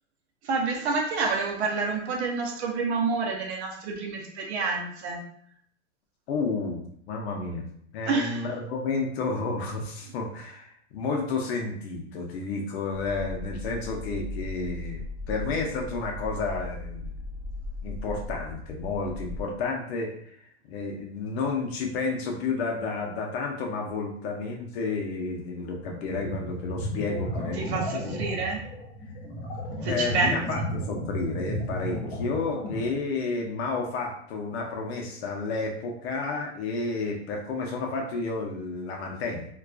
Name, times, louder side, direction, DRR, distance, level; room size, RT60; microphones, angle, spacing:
voice 1, 0.4-5.2 8.0-8.5 10.1-10.2 27.5-28.6 29.8-30.4, right 4 dB, 70° right, 1 dB, 0.6 m, -28 dB
voice 2, 6.3-7.7 7.9-17.1 17.8-20.1 20.7-28.2 29.8-39.5, left 3 dB, 65° left, 1 dB, 0.6 m, -31 dB
sound 1, 12.9-19.4, left 2 dB, 30° right, 1.3 m, -37 dB
sound 2, 25.8-32.9, equal, 45° left, 1.0 m, -34 dB
2.4 x 2.3 x 2.2 m, 0.65 s
supercardioid pair, 165°, 34 cm